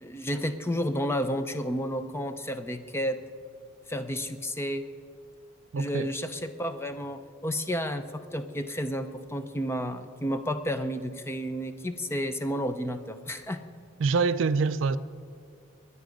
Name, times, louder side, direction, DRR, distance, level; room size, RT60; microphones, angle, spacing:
voice 1, 0.0-3.2 3.9-4.9 5.8-13.6, equal, 10° left, 0.5 m, -31 dB
voice 2, 5.7-6.1 14.0-15.0, right 4 dB, 60° right, 0.4 m, -25 dB
21.0 x 9.8 x 5.2 m
head